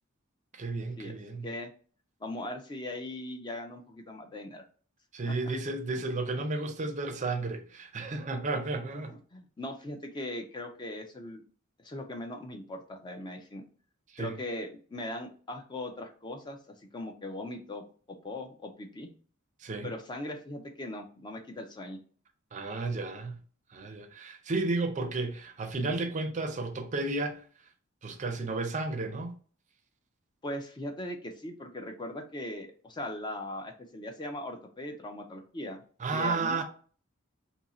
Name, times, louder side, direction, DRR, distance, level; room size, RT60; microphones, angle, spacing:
voice 1, 0.5-1.5 5.1-9.1 14.1-14.4 19.6-19.9 22.5-23.4 23.7-27.4 28.0-29.4 36.0-36.6, right 3 dB, 35° right, 0.5 m, -33 dB
voice 2, 2.2-4.6 5.3-5.5 8.9-11.4 11.8-13.6 14.2-19.1 19.8-22.0 30.4-35.8 36.1-36.6, left 1 dB, 20° left, 0.4 m, -39 dB
2.7 x 2.6 x 4.1 m
head